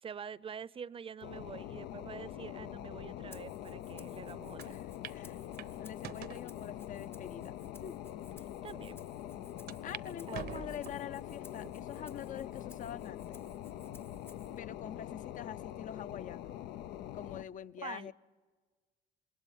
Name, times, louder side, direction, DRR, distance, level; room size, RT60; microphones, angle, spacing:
voice 1, 0.0-4.8 8.6-9.0 10.3-10.7 17.8-18.1, right 7 dB, 35° right, 19 dB, 0.7 m, -46 dB
sound 1, 1.2-17.4, left 12 dB, 85° left, 0.7 m, -44 dB
Rattle (instrument), 3.3-14.6, left 2 dB, 15° left, 0.7 m, -60 dB
voice 2, 4.6-5.4 5.8-8.0 9.8-13.4 14.6-16.6 17.1-18.1, left 9 dB, 50° left, 15 dB, 0.8 m, -45 dB
sound 2, 4.6-4.7 5.0-5.2 5.6-6.4 7.1-7.2 7.9-8.0 8.3-8.4 9.7-10.1 10.3-11.1 11.6-12.1 12.6-12.7 13.9-14.3, right 10 dB, 65° right, 0.9 m, -46 dB
27.0 x 21.0 x 9.1 m, 1.4 s
cardioid pair, 110°, 17 cm